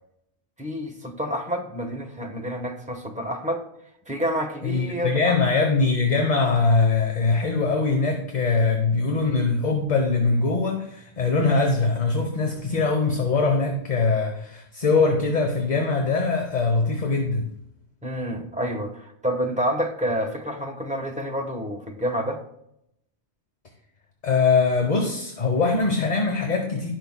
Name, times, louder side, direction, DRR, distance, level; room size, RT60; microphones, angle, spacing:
voice 1, 0.6-3.6 4.1-5.3 18.0-22.4, equal, 5° right, 2 dB, 1.1 m, -28 dB
voice 2, 4.6-17.4 24.2-26.9, left 4 dB, 40° left, 3 dB, 1.1 m, -22 dB
18.0 x 6.0 x 2.3 m, 0.77 s
omnidirectional pair, 1.2 m